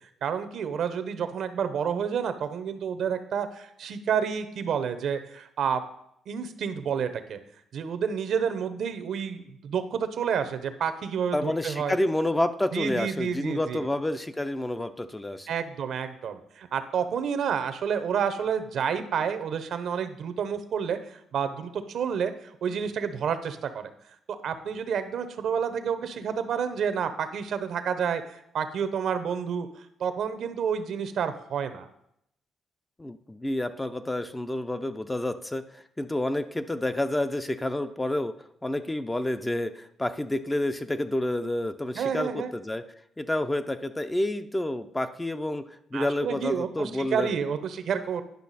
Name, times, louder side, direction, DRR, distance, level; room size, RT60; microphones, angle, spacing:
voice 1, 0.2-5.8 6.3-7.4 7.7-12.0 12.7-13.9 15.5-23.9 24.4-31.9 41.9-42.5 45.9-48.2, right 7 dB, 65° right, 10 dB, 0.8 m, -29 dB
voice 2, 11.3-15.5 33.0-38.3 38.6-42.8 43.2-45.6 45.9-47.3, left 1 dB, 15° left, 9 dB, 0.5 m, -29 dB
10.5 x 5.6 x 4.1 m, 0.75 s
cardioid pair, 90°, 0 cm